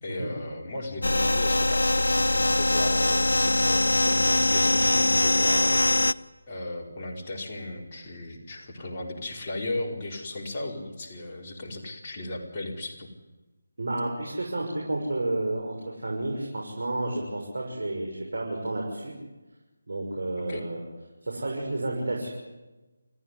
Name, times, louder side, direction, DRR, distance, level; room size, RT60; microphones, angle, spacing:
voice 1, 0.0-6.0 6.5-13.1 20.4-20.6, left 2 dB, 30° left, -2 dB, 4.7 m, -36 dB
sound 1, 1.0-6.1, left 2 dB, 85° left, 0.8 m, -22 dB
voice 2, 13.8-19.1 19.9-20.8 21.2-22.3, right 2 dB, 70° right, 0 dB, 6.7 m, -31 dB
29.5 x 15.5 x 9.9 m, 1.1 s
figure-of-eight pair, 160°, 0 cm